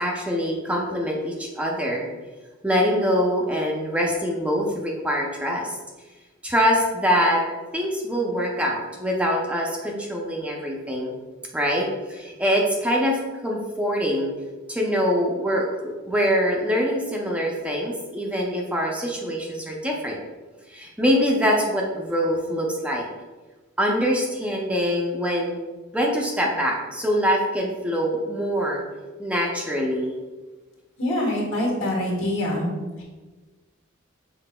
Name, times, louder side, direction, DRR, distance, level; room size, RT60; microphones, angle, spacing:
voice 1, 0.0-2.1 2.6-5.7 6.4-7.4 7.7-11.1 11.5-14.3 14.7-20.2 20.7-23.1 23.8-25.6 25.9-28.8 29.2-30.2, equal, 5° right, -1 dB, 0.5 m, -24 dB
voice 2, 31.0-32.7, left 1 dB, 80° left, -3 dB, 1.5 m, -24 dB
5.8 x 3.9 x 2.2 m, 1.3 s
head